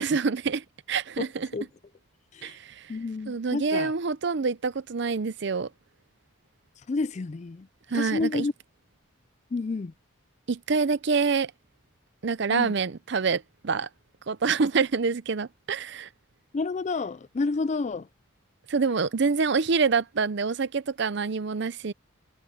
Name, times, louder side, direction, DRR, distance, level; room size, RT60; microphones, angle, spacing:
voice 1, 0.0-1.5 2.4-2.9 3.3-5.7 7.9-8.5 10.5-11.5 12.2-13.9 14.3-16.1 18.7-21.9, right 5 dB, 55° right, 0.6 m, -26 dB
voice 2, 2.9-3.9 6.9-7.7 7.9-8.5 9.5-9.9 12.5-12.7 16.5-18.1, left 3 dB, 35° left, 0.4 m, -29 dB
head